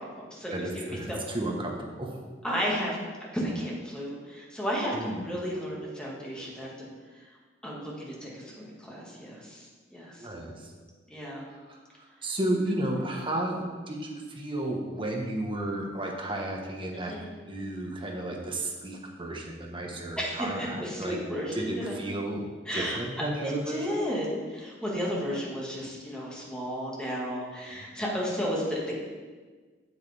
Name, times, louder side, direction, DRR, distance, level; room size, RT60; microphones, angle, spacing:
voice 1, 0.0-1.2 2.4-3.0 3.3-6.9 7.6-9.7 9.9-10.2 11.1-11.4 16.9-17.3 20.2-22.0 22.7-23.0 23.4-28.9, equal, 5° left, -5 dB, 1.9 m, -33 dB
voice 2, 0.5-2.2 4.9-5.3 10.2-10.7 11.7-21.2 21.5-22.5 22.7-24.0 27.7-27.9, right 1 dB, 30° right, 0 dB, 1.3 m, -33 dB
8.1 x 8.1 x 3.5 m, 1.4 s
head